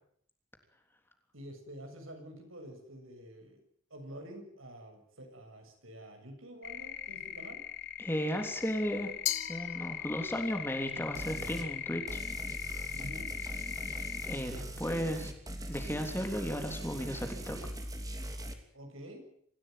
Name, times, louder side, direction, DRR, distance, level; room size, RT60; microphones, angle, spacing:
voice 1, 1.3-3.6 3.9-7.6 12.9-13.3 18.7-19.3, equal, 70° right, 4 dB, 7.3 m, -48 dB
sound 1, 6.6-14.4, left 11 dB, 50° left, 1.4 m, -40 dB
voice 2, 8.0-9.1 9.5-12.2 14.2-15.3 15.7-17.6, equal, 10° left, 4 dB, 3.3 m, -35 dB
Glass, 9.3-10.5, left 13 dB, 70° left, 1.7 m, -37 dB
sound 2, 11.2-11.7 12.1-18.5, right 1 dB, 15° right, 2.9 m, -41 dB
25.5 x 16.0 x 9.4 m, 0.67 s
head